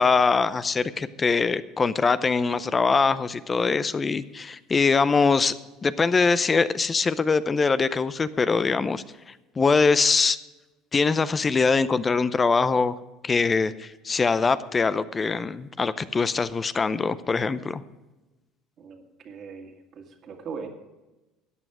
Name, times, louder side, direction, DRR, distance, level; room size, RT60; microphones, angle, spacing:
voice 1, 0.0-5.5 5.8-9.0 9.6-10.4 10.9-13.0 13.2-17.8, left 4 dB, 30° left, 15 dB, 0.6 m, -23 dB
voice 2, 18.8-20.7, right 5 dB, 50° right, 4 dB, 2.1 m, -40 dB
14.0 x 9.1 x 4.9 m, 1.1 s
hypercardioid pair, 75°, 0 cm